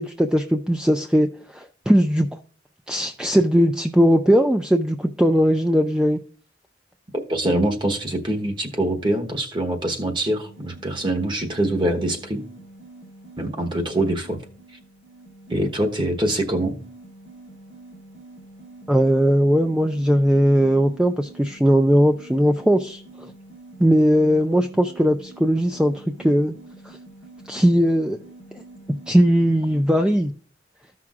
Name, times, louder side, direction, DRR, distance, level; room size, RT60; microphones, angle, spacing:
voice 1, 0.0-2.3 2.9-6.2 18.9-23.0 23.8-26.6 26.9-27.0 27.5-28.2 28.5-28.6 29.1-30.3, equal, 5° right, 5 dB, 0.3 m, -19 dB
voice 2, 7.3-12.4 13.4-14.4 15.5-16.7, right 1 dB, 25° right, 3 dB, 1.1 m, -24 dB
sound 1, 10.4-30.3, right 2 dB, 65° right, 2.8 m, -45 dB
14.0 x 5.9 x 2.4 m, 0.42 s
head